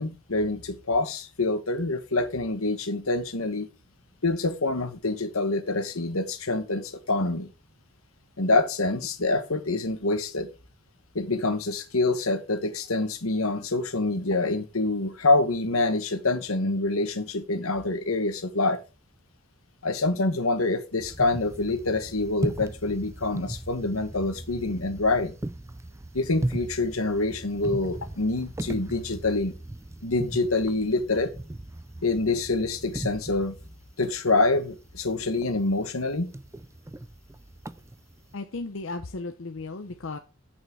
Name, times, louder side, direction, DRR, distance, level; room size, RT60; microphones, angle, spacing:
voice 1, 0.0-3.7 4.2-7.5 8.4-10.5 11.1-18.8 19.8-25.3 26.1-29.5 30.0-31.3 32.0-33.5 34.0-36.3, left 2 dB, 85° left, 1.5 m, -26 dB
sound 1, 21.0-38.3, right 1 dB, 15° right, 0.4 m, -38 dB
voice 2, 38.3-40.2, left 3 dB, 65° left, 0.7 m, -35 dB
8.6 x 6.1 x 4.5 m
head